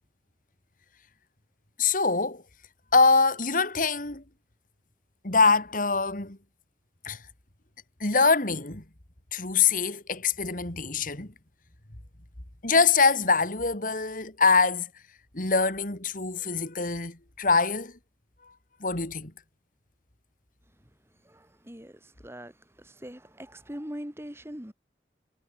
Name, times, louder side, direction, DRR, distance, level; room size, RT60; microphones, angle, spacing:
voice 1, 1.8-2.4 2.9-4.2 5.2-6.4 7.0-7.2 8.0-8.8 9.3-11.3 12.6-14.9 15.3-17.9 18.8-19.3, left 4 dB, 50° left, 2.9 m, -24 dB
voice 2, 21.2-24.7, equal, 15° right, 3.4 m, -42 dB
head